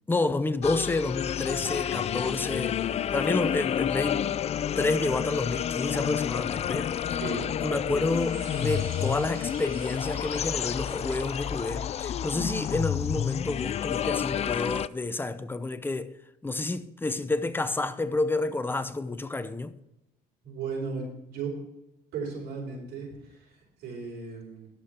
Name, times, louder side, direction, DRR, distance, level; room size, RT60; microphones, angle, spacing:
voice 1, 0.1-4.3 4.8-7.2 7.6-16.2 16.4-19.8, left 2 dB, 10° left, 0.7 m, -29 dB
sound 1, 0.6-14.9, left 9 dB, 40° left, 0.4 m, -30 dB
sound 2, 7.8-12.8, right 7 dB, 65° right, 3.3 m, -50 dB
voice 2, 20.4-21.5 22.1-24.7, right 5 dB, 80° right, 4.9 m, -36 dB
11.5 x 6.7 x 5.9 m
cardioid pair, 110°, 17 cm